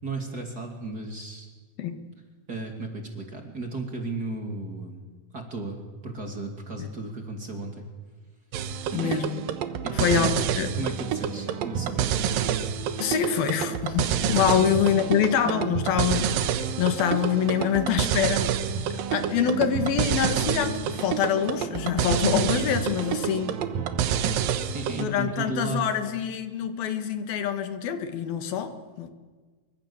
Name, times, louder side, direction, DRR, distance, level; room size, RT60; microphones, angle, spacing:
voice 1, 0.0-1.5 2.5-5.0 5.3-7.9 8.9-9.3 9.8-10.4 10.7-12.3 14.4-14.6 24.2-24.4 24.7-25.8, right 3 dB, 30° right, 3 dB, 2.9 m, -34 dB
sound 1, 8.5-25.0, right 9 dB, 75° right, 2.9 m, -28 dB
voice 2, 8.9-9.4 9.9-10.7 13.0-18.6 19.1-23.6 25.0-29.1, left 8 dB, 80° left, 9 dB, 3.5 m, -25 dB
25.5 x 24.5 x 7.2 m, 1.4 s
omnidirectional pair, 4.2 m